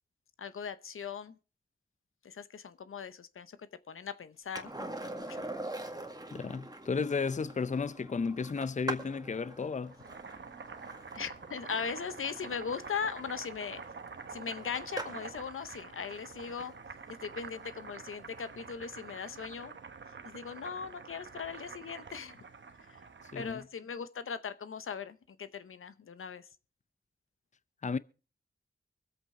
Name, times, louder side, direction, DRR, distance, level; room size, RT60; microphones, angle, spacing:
voice 1, 0.4-1.4 2.2-3.6 3.9-5.5 11.1-13.8 14.3-16.7 17.2-19.8 20.2-22.4 23.3-26.5, left 6 dB, 85° left, 0.8 m, -39 dB
Skateboard, 4.5-15.4 18.0-18.1, right 2 dB, 20° right, 1.8 m, -44 dB
voice 2, 6.3-9.9 23.3-23.6 27.8-28.0, left 5 dB, 35° left, 0.5 m, -33 dB
Boiling, 9.8-23.7, right 5 dB, 65° right, 1.1 m, -47 dB
24.0 x 8.2 x 3.7 m
cardioid pair, 50°, 21 cm